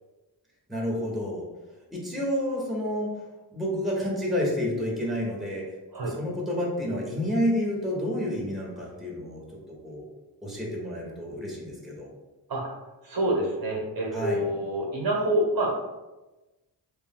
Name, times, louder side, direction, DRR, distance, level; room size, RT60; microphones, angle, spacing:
voice 1, 0.7-1.4 1.9-3.1 3.5-5.7 6.0-9.4 9.8-10.0 10.4-12.1 14.1-14.4, equal, ahead, -3 dB, 1.3 m, -29 dB
voice 2, 13.0-15.7, right 1 dB, 55° right, -2 dB, 1.1 m, -27 dB
3.4 x 2.6 x 3.7 m, 1.1 s
cardioid pair, 70°, 42 cm